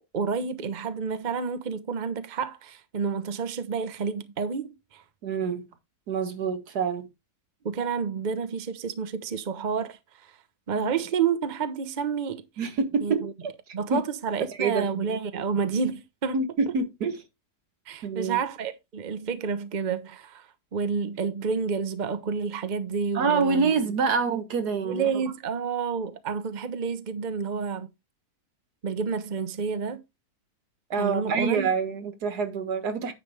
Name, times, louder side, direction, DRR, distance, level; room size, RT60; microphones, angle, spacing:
voice 1, 0.1-5.0 7.6-10.3 10.7-12.4 13.0-13.3 13.7-16.4 17.9-23.7 24.8-27.9 28.8-30.0 31.0-31.7, right 6 dB, 35° right, 0.9 m, -29 dB
voice 2, 5.2-5.7 6.1-7.1 10.7-10.9 12.6-13.5 13.9-14.0 14.6-15.1 16.3-17.2 18.0-18.4 23.1-25.1 30.9-33.1, right 5 dB, 80° right, 1.9 m, -26 dB
9.8 x 6.6 x 3.4 m
omnidirectional pair, 1.7 m